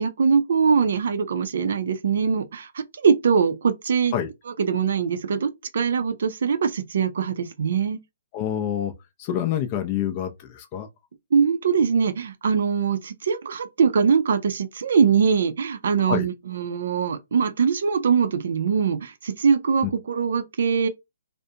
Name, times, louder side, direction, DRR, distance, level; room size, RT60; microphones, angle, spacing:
voice 1, 0.0-4.1 4.6-8.0 11.3-20.9, right 6 dB, 65° right, 0.4 m, -22 dB
voice 2, 8.3-8.9 9.2-10.9 16.1-16.3 19.8-19.9, left 10 dB, 25° left, 0.4 m, -27 dB
2.5 x 2.0 x 2.7 m
hypercardioid pair, 160°, 0 cm